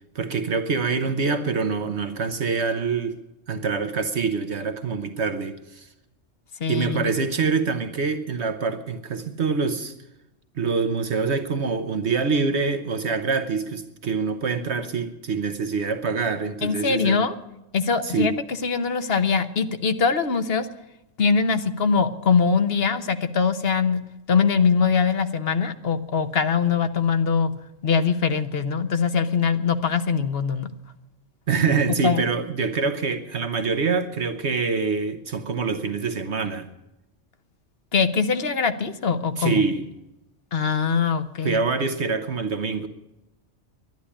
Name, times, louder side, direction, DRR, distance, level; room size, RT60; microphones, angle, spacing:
voice 1, 0.1-3.2 3.5-5.9 6.7-9.9 10.5-17.2 18.0-18.4 31.5-36.7 39.4-39.8 41.4-42.9, right 4 dB, 65° right, 8 dB, 1.2 m, -25 dB
voice 2, 6.6-7.1 16.6-17.3 17.7-20.7 21.2-24.0 24.3-27.5 27.8-30.7 32.0-32.2 37.9-39.6 40.5-41.6, left 5 dB, 55° left, 10 dB, 1.1 m, -22 dB
11.5 x 10.5 x 9.9 m, 0.91 s
omnidirectional pair, 1.3 m